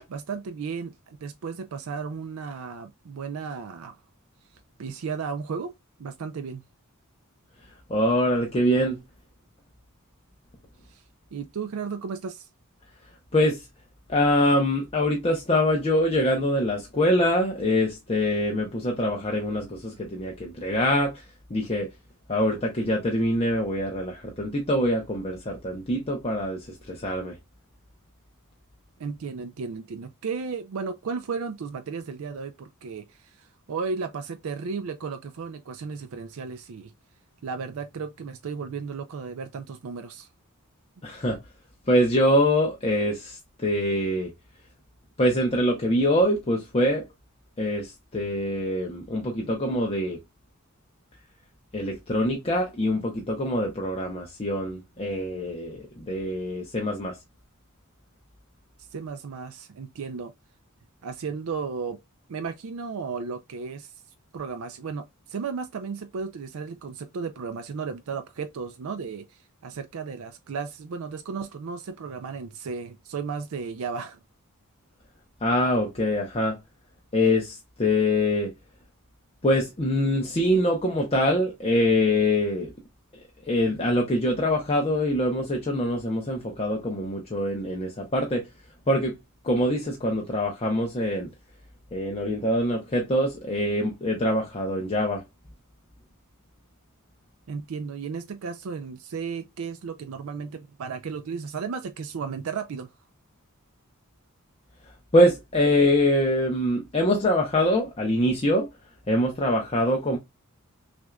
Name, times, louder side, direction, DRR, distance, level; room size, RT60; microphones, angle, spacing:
voice 1, 0.3-3.9 4.8-5.7 6.0-6.6 10.9-11.0 11.3-12.5 29.0-36.9 37.4-40.3 58.8-60.3 61.0-62.0 62.3-63.9 64.3-74.2 97.5-102.9, right 5 dB, 65° right, 0.4 m, -34 dB
voice 2, 7.9-9.0 13.3-13.7 14.1-21.2 21.5-21.9 22.3-27.4 41.0-41.4 41.9-44.3 45.2-47.0 47.6-50.2 51.7-57.2 75.4-76.6 77.1-78.5 79.4-82.7 83.4-88.4 88.9-89.2 89.4-91.3 91.9-95.2 105.1-108.7 109.1-110.2, left 1 dB, 25° left, 0.7 m, -24 dB
6.0 x 2.5 x 2.2 m
head